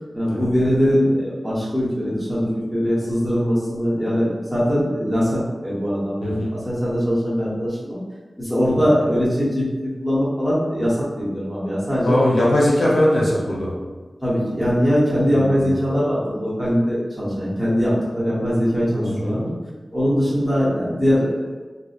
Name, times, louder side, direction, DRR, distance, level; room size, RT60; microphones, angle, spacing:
voice 1, 0.1-6.4 6.6-8.0 8.4-9.7 10.0-12.2 14.2-19.5 19.9-21.7, equal, 10° right, -9 dB, 1.0 m, -21 dB
voice 2, 12.0-13.7 15.3-15.7 19.1-19.4, left 1 dB, 85° left, -5 dB, 0.6 m, -20 dB
2.7 x 2.1 x 2.4 m, 1.3 s
wide cardioid pair, 70°, 0 cm